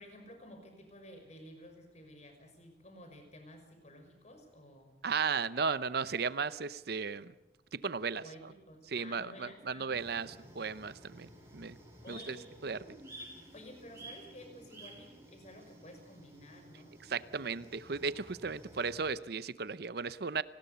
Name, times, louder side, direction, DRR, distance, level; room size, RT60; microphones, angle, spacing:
voice 1, 0.0-5.0 8.2-10.2 12.0-12.7 13.5-17.0, equal, 40° left, 5 dB, 6.0 m, -53 dB
voice 2, 5.0-7.3 7.7-8.5 8.9-11.8 12.1-12.4 12.6-12.8 17.0-20.4, right 5 dB, 60° right, 16 dB, 0.7 m, -35 dB
sound 1, 9.9-19.1, right 1 dB, 15° right, 7.2 m, -53 dB
30.0 x 20.0 x 6.9 m, 1.0 s
head